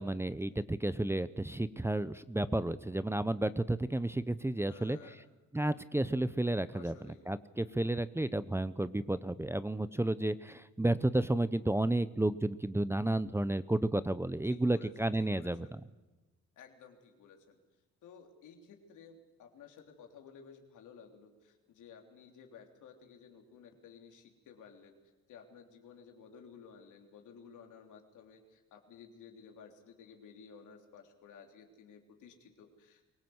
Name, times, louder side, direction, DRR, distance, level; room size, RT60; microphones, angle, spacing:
voice 1, 0.0-5.1 5.5-15.8, right 1 dB, 10° right, 15 dB, 0.7 m, -32 dB
voice 2, 4.6-5.2 6.7-7.2 14.5-15.7 16.6-17.6 18.0-25.0 25.3-33.1, left 6 dB, 80° left, 3 dB, 3.5 m, -55 dB
23.5 x 18.0 x 8.0 m, 1.2 s
cardioid pair, 90°, 30 cm